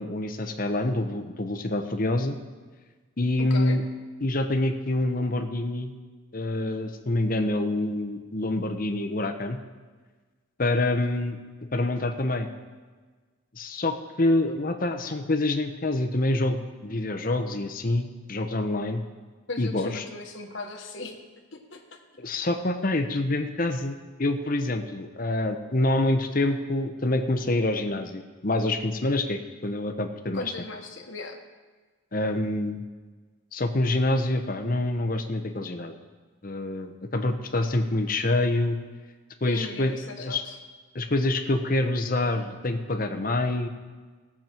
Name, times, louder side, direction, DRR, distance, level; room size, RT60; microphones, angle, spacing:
voice 1, 0.0-2.4 3.2-3.8 4.2-5.9 6.3-9.6 10.6-11.4 11.7-12.5 13.5-19.0 19.6-20.0 22.2-30.4 32.1-32.8 33.5-35.9 36.4-38.8 39.4-40.4 40.9-43.7, left 2 dB, 45° left, 6 dB, 0.9 m, -26 dB
voice 2, 3.4-3.8 19.5-21.2 21.5-22.0 30.3-31.4 39.4-40.6, left 3 dB, 65° left, 3 dB, 1.4 m, -37 dB
18.5 x 7.3 x 4.5 m, 1.4 s
head